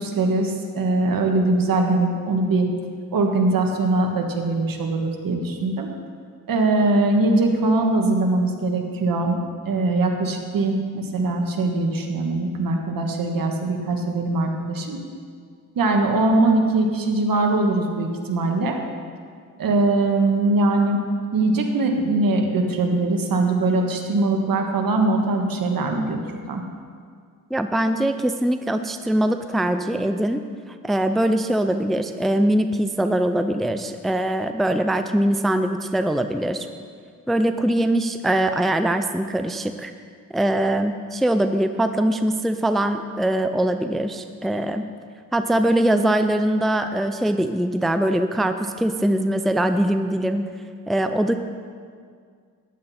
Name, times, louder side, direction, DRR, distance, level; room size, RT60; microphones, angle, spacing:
voice 1, 0.0-2.7 3.1-5.9 6.5-9.4 9.6-15.0 15.7-18.8 19.6-21.0 21.3-26.6, right 2 dB, 70° right, 2 dB, 1.6 m, -21 dB
voice 2, 27.5-30.4 30.8-36.7 37.3-39.9 40.3-44.8 45.3-50.4 50.9-51.3, right 1 dB, ahead, 8 dB, 0.5 m, -22 dB
14.5 x 10.0 x 4.3 m, 2.1 s
cardioid pair, 105°, 35 cm